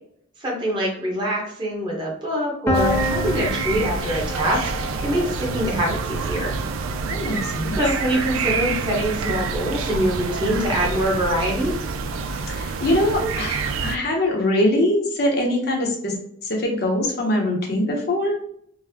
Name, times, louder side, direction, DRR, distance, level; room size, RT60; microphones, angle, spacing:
voice 1, 0.4-4.7 5.0-6.5 7.7-11.7, equal, 25° right, -3 dB, 0.8 m, -24 dB
Piano, 2.7-8.4, left 2 dB, 10° left, 0.4 m, -30 dB
sound 1, 2.7-14.0, right 5 dB, 85° right, 0.3 m, -27 dB
voice 2, 7.1-7.8 12.5-16.1 16.4-18.3, left 1 dB, 50° left, 0 dB, 0.7 m, -22 dB
3.8 x 2.0 x 2.7 m, 0.69 s
head